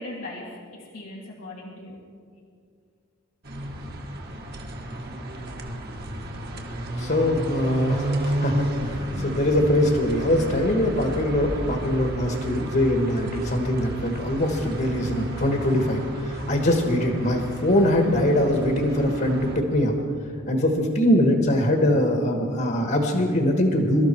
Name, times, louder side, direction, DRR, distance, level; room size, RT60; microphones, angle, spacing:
voice 1, 0.0-2.0, left 1 dB, 85° left, -4 dB, 1.9 m, -38 dB
sound 1, 3.4-19.6, right 1 dB, 50° right, 1.6 m, -32 dB
voice 2, 7.0-20.0 20.5-24.1, left 1 dB, 45° left, 3 dB, 1.5 m, -22 dB
24.0 x 13.0 x 4.5 m, 2.2 s
head